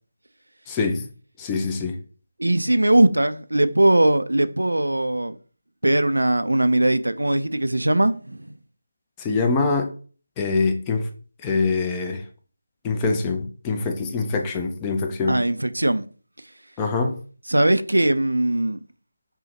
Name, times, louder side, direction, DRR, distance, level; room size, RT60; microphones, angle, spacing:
voice 1, 0.7-1.1 1.4-2.0 9.2-9.9 10.4-11.1 11.4-12.2 12.8-15.4 16.8-17.2, left 4 dB, 15° left, 0.4 m, -24 dB
voice 2, 2.4-5.3 5.8-8.5 15.3-16.1 17.5-18.8, right 1 dB, 90° right, 0.3 m, -20 dB
5.4 x 2.1 x 2.9 m
figure-of-eight pair, 165°, 0 cm